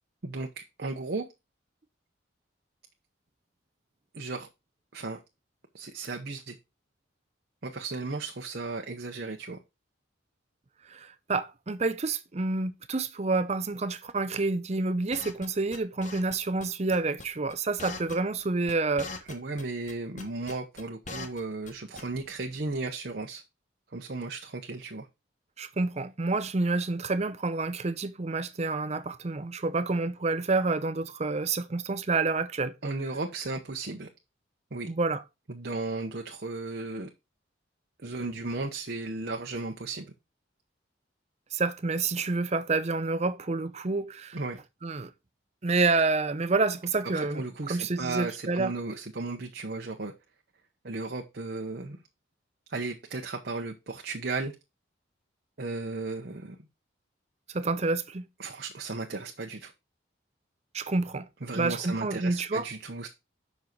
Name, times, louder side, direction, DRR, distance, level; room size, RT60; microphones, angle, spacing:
voice 1, 0.2-1.3 4.1-4.5 4.9-5.2 5.7-6.6 7.6-9.6 19.3-23.4 23.9-25.1 32.8-34.1 34.7-34.9 35.5-37.1 38.0-40.0 44.3-44.6 47.1-50.1 50.8-52.0 52.7-54.5 55.6-56.6 58.4-59.7 61.4-63.1, right 3 dB, 55° right, 0.9 m, -35 dB
voice 2, 10.9-19.1 25.6-32.7 34.9-35.2 41.5-44.4 44.8-45.1 45.6-48.7 57.5-58.2 60.7-61.3 61.5-62.7, right 3 dB, 35° right, 0.6 m, -28 dB
sound 1, 15.1-16.4 16.6-16.7 16.9-17.5 17.8-18.4 18.7-19.6 19.9-21.4 21.7-21.8 22.0-22.3, left 3 dB, 40° left, 1.2 m, -40 dB
7.3 x 5.5 x 4.5 m
head